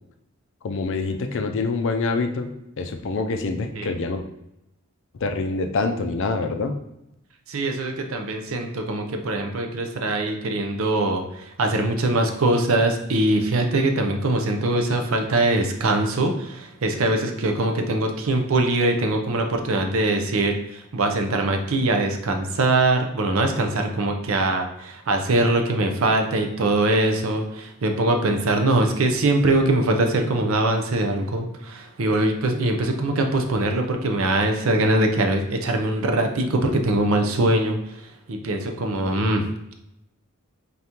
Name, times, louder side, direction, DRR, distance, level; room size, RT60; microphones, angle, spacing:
voice 1, 0.6-2.5 2.8-4.2 5.2-6.7, left 3 dB, 60° left, 6 dB, 0.5 m, -25 dB
voice 2, 7.5-37.8 38.3-39.4, right 2 dB, 70° right, 4 dB, 0.6 m, -22 dB
3.9 x 3.6 x 2.9 m, 0.84 s
head